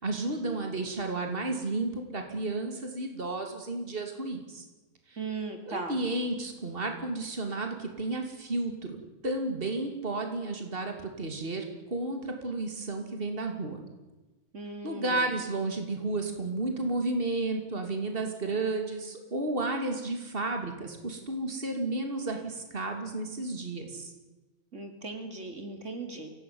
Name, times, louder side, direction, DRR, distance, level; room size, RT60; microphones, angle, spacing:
voice 1, 0.0-4.7 5.1-5.2 5.7-13.8 14.8-24.1, right 2 dB, 45° right, 4 dB, 3.1 m, -32 dB
voice 2, 5.2-6.0 14.5-15.2 24.7-26.3, right 3 dB, 65° right, 5 dB, 3.1 m, -38 dB
24.5 x 17.5 x 9.5 m, 1.2 s
omnidirectional pair, 1.4 m